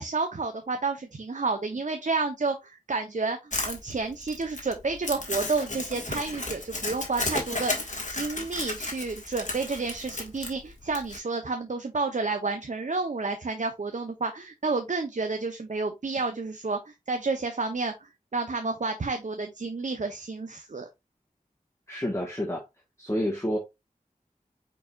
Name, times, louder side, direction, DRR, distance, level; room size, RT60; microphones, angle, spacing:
voice 1, 0.0-20.9, right 3 dB, 60° right, 0.7 m, -30 dB
Crumpling crinkling, 3.5-11.2, left 2 dB, 60° left, 1.6 m, -33 dB
voice 2, 21.9-22.6 23.0-23.6, equal, 20° left, 1.3 m, -29 dB
4.8 x 4.7 x 2.3 m
wide cardioid pair, 45°, 14 cm